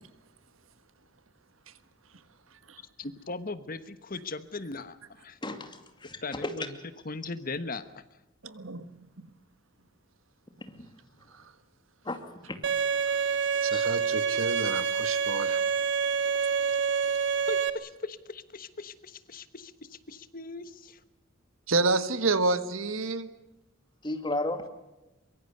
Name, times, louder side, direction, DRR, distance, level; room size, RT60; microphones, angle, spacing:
voice 1, 3.0-5.4 6.2-6.8 7.0-8.0 17.5-21.0, left 3 dB, 45° left, 13 dB, 1.2 m, -39 dB
voice 2, 5.4-6.5 12.0-12.2 12.5-12.6 13.7-13.8 24.0-24.6, left 2 dB, 25° left, 7 dB, 2.4 m, -33 dB
voice 3, 8.4-8.9 9.2-9.3 13.6-15.6 21.7-23.3, right 3 dB, 80° right, 12 dB, 1.5 m, -29 dB
Bowed string instrument, 12.6-17.7, right 6 dB, 60° right, 1.3 m, -27 dB
23.5 x 23.0 x 6.8 m, 0.99 s
head